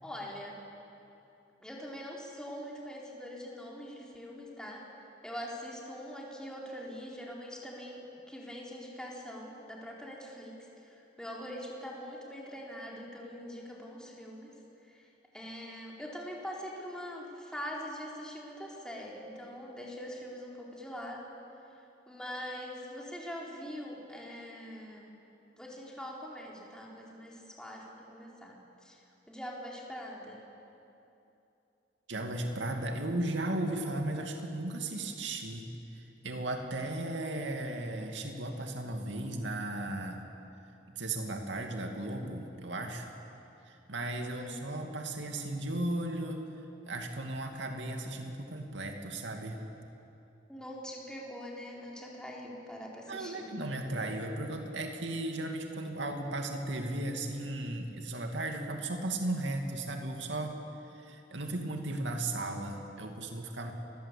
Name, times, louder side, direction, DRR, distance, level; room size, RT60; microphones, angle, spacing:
voice 1, 0.0-0.6 1.6-4.8 5.2-14.6 14.9-15.1 15.3-21.2 22.1-25.1 25.6-30.4 44.3-44.5 50.5-53.5, equal, 5° left, -3 dB, 4.5 m, -43 dB
voice 2, 32.1-35.7 35.9-40.2 40.9-43.1 43.7-46.4 46.9-49.6 53.1-60.6 60.9-63.7, right 1 dB, 85° right, 3 dB, 2.5 m, -36 dB
29.0 x 22.0 x 8.6 m, 2.9 s
head